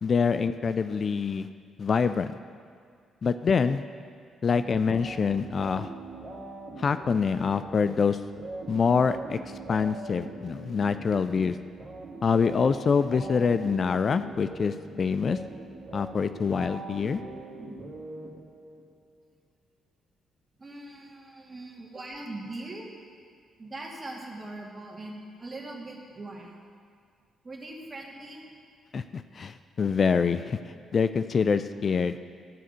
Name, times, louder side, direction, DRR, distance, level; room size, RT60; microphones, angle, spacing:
voice 1, 0.0-1.5 1.8-2.3 3.2-3.8 4.4-5.9 6.8-8.2 8.7-9.4 9.7-11.6 12.2-15.4 15.9-17.2 28.9-30.6 30.9-32.2, left 5 dB, 45° left, 11 dB, 0.3 m, -25 dB
sound 1, 4.5-18.8, right 2 dB, 50° right, 2.3 m, -42 dB
voice 2, 20.6-22.9 23.6-26.6 27.4-28.4, right 2 dB, 30° right, -2 dB, 2.4 m, -41 dB
13.5 x 4.9 x 6.7 m, 2.2 s
hypercardioid pair, 40°, 0 cm